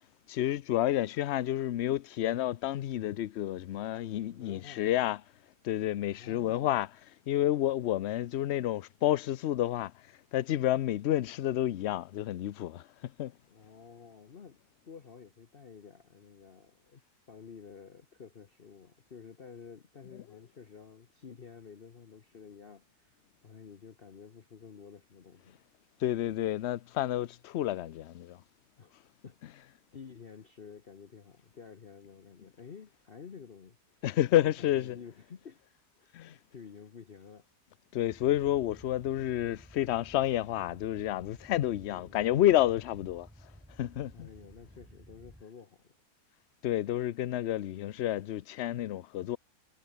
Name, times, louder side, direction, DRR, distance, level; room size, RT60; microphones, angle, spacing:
voice 1, 0.3-5.2 5.6-6.9 7.3-9.9 10.3-13.3 26.0-28.4 34.0-35.0 36.1-36.4 37.9-43.3 43.8-44.3 46.6-49.4, left 13 dB, 60° left, 0.7 m, -30 dB
voice 2, 4.3-4.9 6.1-6.7 13.5-14.6 14.8-17.0 17.3-23.2 23.4-25.6 28.8-28.9 29.2-29.6 29.9-34.0 34.4-35.6 36.0-37.5 41.7-42.2 44.1-46.0, left 6 dB, 40° left, 1.1 m, -51 dB
sound 1, 38.1-45.4, equal, 5° right, 7.5 m, -55 dB
omnidirectional pair, 1.7 m